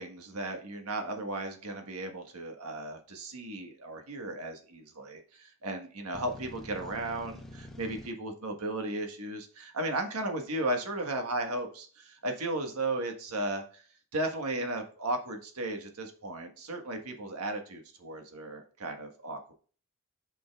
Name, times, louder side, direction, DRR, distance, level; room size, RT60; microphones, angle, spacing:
voice 1, 0.0-13.8 14.1-19.5, right 2 dB, 85° right, 4 dB, 1.5 m, -35 dB
sound 1, 6.1-8.1, left 1 dB, ahead, 0.9 m, -46 dB
8.4 x 5.3 x 2.3 m, 0.40 s
head